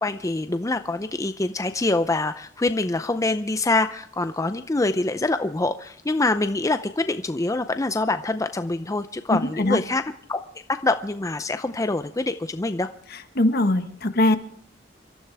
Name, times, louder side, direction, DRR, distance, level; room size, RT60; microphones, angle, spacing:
voice 1, 0.0-10.0 10.3-10.4 10.7-12.9, left 2 dB, 20° left, 10 dB, 0.5 m, -25 dB
voice 2, 9.3-9.8 13.3-14.4, left 2 dB, 60° left, 9 dB, 1.4 m, -21 dB
28.0 x 13.5 x 3.5 m, 0.64 s
head